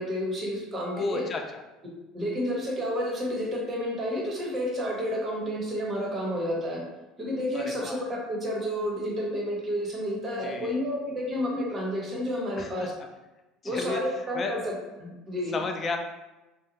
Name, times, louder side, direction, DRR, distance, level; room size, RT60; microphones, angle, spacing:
voice 1, 0.0-1.3 2.1-6.8 7.2-12.9 13.6-15.6, equal, 35° right, -2 dB, 0.9 m, -30 dB
voice 2, 0.9-1.6 7.5-8.0 10.4-10.8 12.6-12.9 13.6-14.5 15.5-16.0, left 4 dB, 35° left, 4 dB, 0.4 m, -33 dB
2.5 x 2.1 x 2.9 m, 1.1 s
supercardioid pair, 85°, 0 cm